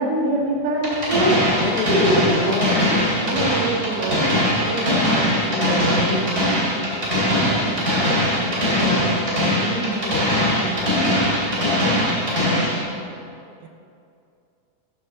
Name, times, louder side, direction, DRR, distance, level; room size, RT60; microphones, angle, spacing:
voice 1, 0.0-1.4 1.9-2.0 2.4-2.5 3.2-3.4 4.6-8.3 9.0-10.9, right 1 dB, 45° right, -4 dB, 1.6 m, -27 dB
sound 1, 0.8-12.8, equal, 25° right, 2.1 m, -20 dB
voice 2, 1.6-3.1 7.9-9.2, left 4 dB, 75° left, 5 dB, 1.9 m, -28 dB
voice 3, 3.2-4.5 13.6-13.7, right 6 dB, 75° right, 4 dB, 2.1 m, -28 dB
13.5 x 5.5 x 3.7 m, 2.5 s
omnidirectional pair, 3.8 m